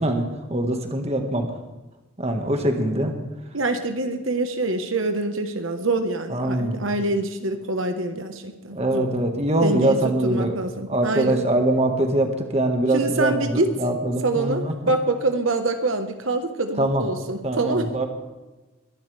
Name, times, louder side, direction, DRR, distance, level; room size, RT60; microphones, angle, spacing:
voice 1, 0.0-1.5 2.2-3.1 6.3-6.8 8.7-10.6 10.9-14.9 16.8-17.0 17.4-18.1, right 1 dB, 30° right, 4 dB, 1.7 m, -23 dB
voice 2, 3.5-9.1 9.6-10.0 10.2-11.4 12.9-13.7 14.2-17.9, right 2 dB, 75° right, 6 dB, 1.3 m, -25 dB
22.5 x 11.5 x 3.4 m, 1.1 s
head